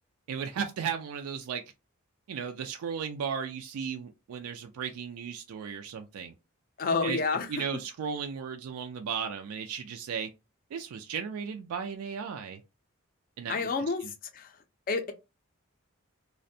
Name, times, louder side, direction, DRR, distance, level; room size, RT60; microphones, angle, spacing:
voice 1, 0.3-1.6 2.3-6.3 7.0-7.2 7.5-10.3 10.7-12.6 13.4-13.7 14.0-14.1, right 7 dB, 80° right, 0.3 m, -35 dB
voice 2, 6.8-7.5 13.5-14.6 14.9-15.1, left 4 dB, 40° left, 0.4 m, -29 dB
2.5 x 2.1 x 2.6 m
head